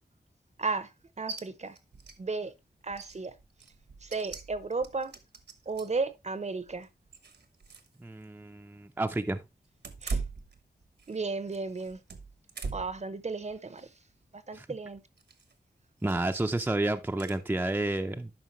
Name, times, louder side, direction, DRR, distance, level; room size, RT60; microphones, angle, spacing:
voice 1, 0.6-0.9 1.2-1.8 2.2-2.5 2.8-3.3 4.0-5.1 5.7-6.9 10.0-10.2 11.1-12.0 12.7-13.9 14.3-15.0, right 4 dB, 40° right, 0.8 m, -34 dB
sound 1, 1.3-1.4 1.8-2.2 2.5-2.6 2.9-6.1 6.6-8.0 8.2-8.3 9.7-11.2 11.5-13.0 13.5-13.8 15.2-15.5 16.0-16.4 17.2-17.4, right 4 dB, 75° right, 1.1 m, -40 dB
voice 2, 8.0-9.4 14.5-14.7 16.0-18.3, right 2 dB, 10° right, 0.5 m, -30 dB
11.5 x 5.0 x 3.1 m
wide cardioid pair, 80°, 18 cm